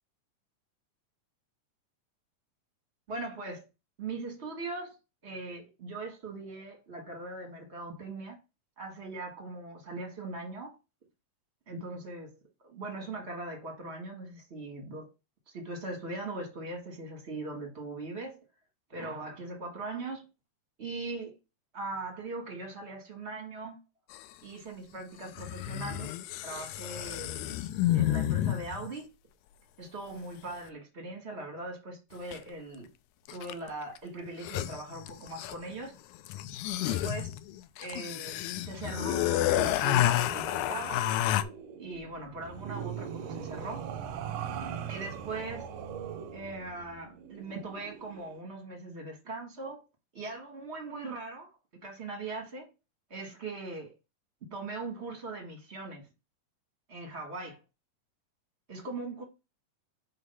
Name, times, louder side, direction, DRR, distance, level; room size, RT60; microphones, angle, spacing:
voice 1, 3.1-3.6 4.0-5.0 5.2-8.4 8.8-10.8 11.7-12.4 12.6-15.1 15.5-18.4 18.9-20.2 20.8-21.4 21.7-23.8 24.4-26.1 26.4-27.6 27.9-29.1 29.8-32.9 33.3-36.0 36.8-37.3 37.8-41.0 41.8-43.9 44.9-45.7 46.3-49.8 50.1-51.5 51.8-52.7 53.1-54.0 54.5-56.1 56.9-57.6 58.7-59.2, right 2 dB, 40° right, 0.9 m, -40 dB
sound 1, 24.1-24.2 25.4-28.9 32.3-32.4 33.3-33.7 34.0-34.1 34.3-35.7 36.3-41.4, left 13 dB, 85° left, 1.7 m, -30 dB
sound 2, 39.4-48.4, right 8 dB, 90° right, 1.4 m, -41 dB
8.0 x 2.8 x 5.5 m
omnidirectional pair, 3.9 m